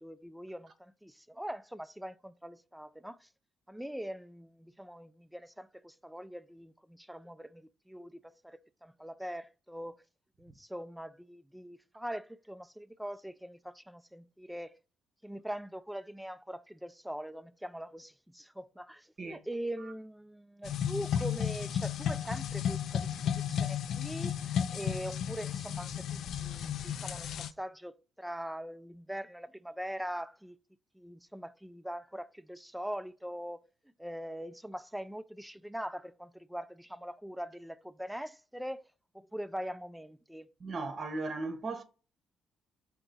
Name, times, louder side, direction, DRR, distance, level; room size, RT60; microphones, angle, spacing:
voice 1, 0.0-3.3 3.7-10.0 10.4-14.7 15.2-30.6 31.0-33.6 34.0-38.8 39.1-40.5, equal, 5° right, 0.3 m, -42 dB
sound 1, 20.6-27.5, left 8 dB, 70° left, 0.3 m, -33 dB
voice 2, 40.6-41.8, right 3 dB, 45° right, 0.8 m, -36 dB
4.5 x 2.8 x 3.9 m
cardioid pair, 90°, 0 cm